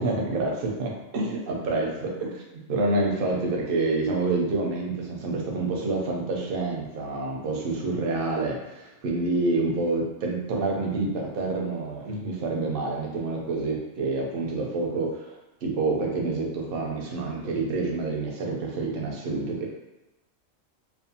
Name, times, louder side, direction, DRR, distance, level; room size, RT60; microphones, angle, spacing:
voice 1, 0.0-2.4 2.7-19.7, right 3 dB, 60° right, -1 dB, 0.6 m, -28 dB
2.6 x 2.1 x 2.6 m, 1.0 s
omnidirectional pair, 1.3 m